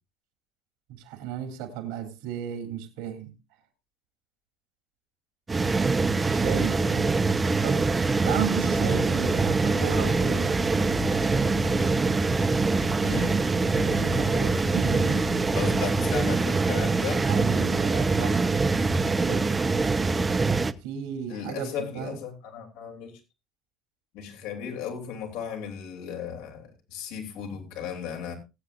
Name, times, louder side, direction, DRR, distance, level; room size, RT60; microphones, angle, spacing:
voice 1, 0.9-3.3 6.3-7.1 7.6-7.9 8.2-10.6 13.6-15.4 17.3-18.5 18.8-19.5 20.8-22.2, right 8 dB, 80° right, 3.4 m, -34 dB
sound 1, 5.5-20.7, right 3 dB, 20° right, 0.8 m, -24 dB
sound 2, 8.8-16.4, left 5 dB, 35° left, 1.0 m, -38 dB
voice 2, 13.0-13.4 15.5-17.2 21.3-23.2 24.1-28.3, left 8 dB, 75° left, 3.4 m, -35 dB
21.0 x 8.5 x 2.6 m
hypercardioid pair, 80°, 0 cm